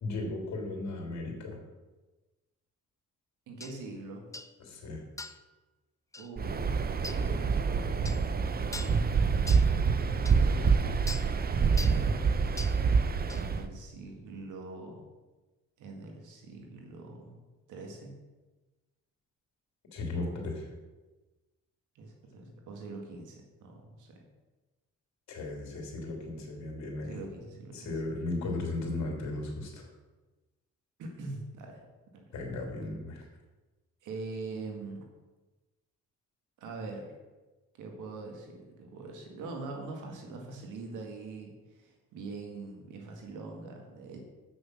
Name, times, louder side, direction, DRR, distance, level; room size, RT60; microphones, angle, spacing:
voice 1, 0.0-1.6 4.6-5.0 19.9-20.6 25.3-27.2 27.7-29.9 32.3-33.2, left 2 dB, 65° left, 1 dB, 3.1 m, -36 dB
voice 2, 3.5-4.2 6.2-8.6 9.2-10.9 11.7-12.3 13.2-15.0 15.8-17.4 17.7-18.1 20.1-20.4 22.0-24.2 27.0-28.0 31.0-31.8 32.1-32.3 34.0-35.1 36.6-37.1 37.7-44.2, right 3 dB, 85° right, 2 dB, 2.0 m, -43 dB
sound 1, 3.6-3.7 4.3-4.5 5.2-5.5 6.1-6.3 7.0-7.2 8.0-8.2 8.7-9.0 9.5-9.7 10.2-10.4 11.1-11.3 11.8-12.0 12.6-12.8 13.3-13.4, left 2 dB, 10° left, 0.5 m, -41 dB
Waves surf, 6.4-13.7, right 5 dB, 30° right, 0.7 m, -27 dB
7.9 x 6.4 x 6.1 m, 1.2 s
cardioid pair, 90°, 30 cm